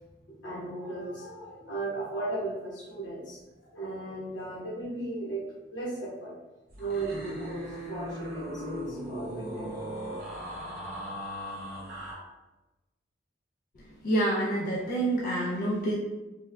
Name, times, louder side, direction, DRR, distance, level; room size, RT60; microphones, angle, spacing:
voice 1, 0.3-5.4 5.7-6.3 6.8-10.3, right 2 dB, 85° left, -5 dB, 0.9 m, -36 dB
sound 1, 6.7-12.1, equal, 55° right, 1.0 m, -38 dB
voice 2, 14.0-15.9, right 1 dB, 50° left, -4 dB, 0.4 m, -27 dB
3.3 x 2.0 x 2.2 m, 1.1 s
head